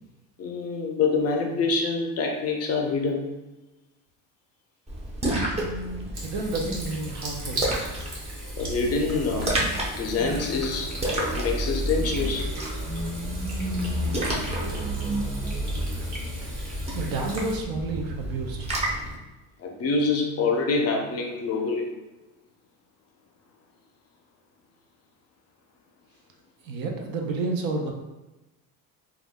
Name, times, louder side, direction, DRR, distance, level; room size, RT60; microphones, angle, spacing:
voice 1, 0.4-3.3 8.6-9.6 10.0-12.5 19.6-21.9, left 4 dB, 40° left, 2 dB, 0.5 m, -26 dB
Splash splatter, 4.9-19.2, equal, 15° right, 0.6 m, -31 dB
voice 2, 5.6-7.7 16.9-18.7 26.6-27.9, right 3 dB, 65° right, 2 dB, 0.6 m, -30 dB
Water tap faucet / Sink (filling or washing), 6.1-17.6, right 2 dB, 50° right, 1.0 m, -40 dB
sound 1, 8.5-16.2, right 2 dB, 85° right, 1.2 m, -35 dB
2.3 x 2.1 x 3.5 m, 1.0 s
cardioid pair, 110°, 37 cm